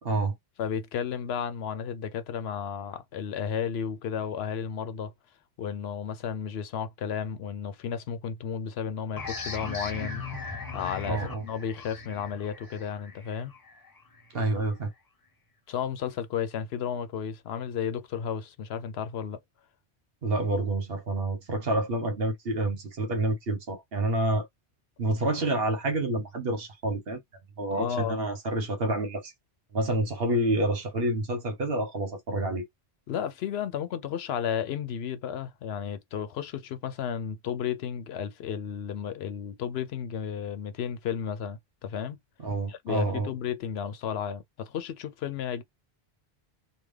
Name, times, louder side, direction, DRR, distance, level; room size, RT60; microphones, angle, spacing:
voice 1, 0.0-0.3 11.1-11.4 14.3-14.9 20.2-24.5 25.0-27.2 27.6-29.3 29.7-32.6 42.4-43.3, right 2 dB, 65° right, 1.2 m, -28 dB
voice 2, 0.6-5.1 5.6-10.2 10.7-13.5 15.7-19.4 27.7-28.2 33.1-42.2 42.7-45.6, left 8 dB, 80° left, 0.9 m, -33 dB
sound 1, 9.2-14.5, left 4 dB, 25° left, 0.6 m, -39 dB
3.5 x 2.3 x 3.2 m
omnidirectional pair, 1.1 m